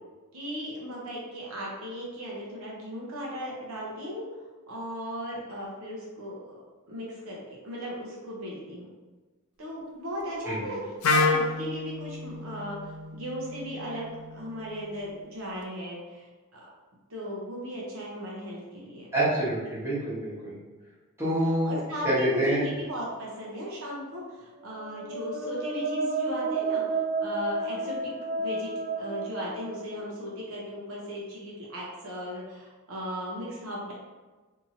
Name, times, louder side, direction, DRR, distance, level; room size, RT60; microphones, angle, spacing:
voice 1, 0.3-4.2 4.7-6.6 6.9-8.9 9.6-16.6 17.1-19.1 21.6-28.1 28.4-28.7 29.0-33.9, equal, 75° right, -4 dB, 0.7 m, -37 dB
Wind instrument woodwind instrument, 11.0-14.9, left 3 dB, 85° left, 0.4 m, -29 dB
voice 2, 19.1-20.6 21.2-21.8 22.0-22.6, right 1 dB, 10° right, -10 dB, 0.9 m, -27 dB
sound 1, 24.7-30.5, right 3 dB, 40° right, 0.3 m, -31 dB
2.8 x 2.6 x 2.5 m, 1.3 s
head